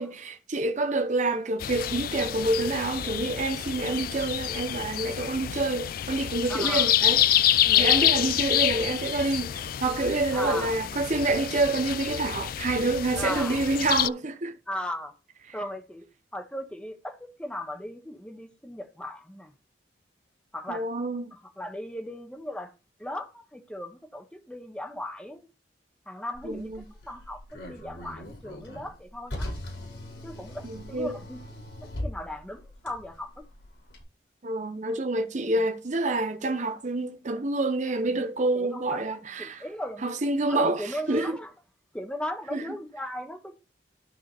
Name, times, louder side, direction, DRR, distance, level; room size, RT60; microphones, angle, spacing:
voice 1, 0.0-14.6 15.5-15.6 20.7-21.3 26.4-26.9 30.6-31.2 34.4-39.6 40.0-41.4 42.5-42.7, right 2 dB, 45° right, 0.8 m, -28 dB
sound 1, 1.6-14.1, left 12 dB, 55° left, 0.3 m, -27 dB
voice 2, 6.5-6.9 7.6-8.0 10.3-10.8 13.1-13.6 14.7-15.1 15.5-16.0 16.3-19.5 20.5-20.9 21.3-22.7 23.0-25.5 26.1-29.5 30.2-31.4 32.0-33.4 38.0-38.2 38.5-40.0 40.5-41.5 41.9-43.6, left 1 dB, 5° left, 1.4 m, -37 dB
Car, 26.3-34.0, left 1 dB, 85° left, 5.5 m, -40 dB
13.5 x 4.9 x 3.4 m
head